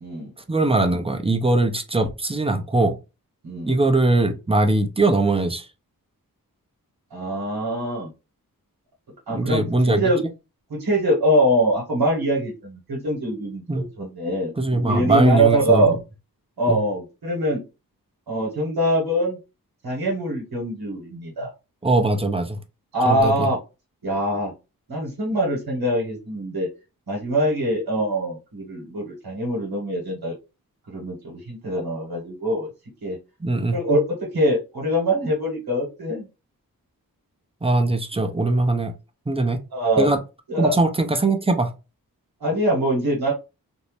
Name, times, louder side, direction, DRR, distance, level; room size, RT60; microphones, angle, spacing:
voice 1, 0.5-2.9 3.7-5.7 9.3-10.0 13.7-13.8 14.6-16.0 16.7-16.8 21.8-22.6 23.0-23.5 33.4-33.8 37.6-38.9 39.3-39.6 40.0-40.2 40.6-41.7, right 2 dB, 15° right, 0.6 m, -21 dB
voice 2, 7.1-8.1 9.3-10.2 10.7-15.9 16.6-17.6 18.3-19.4 19.8-21.5 22.9-23.6 24.0-24.5 24.9-26.7 27.1-30.3 30.9-32.7 33.0-33.2 33.7-36.3 39.7-40.1 40.5-40.7 42.4-43.3, right 1 dB, 85° right, 1.1 m, -23 dB
2.6 x 2.1 x 3.0 m
cardioid pair, 45°, 37 cm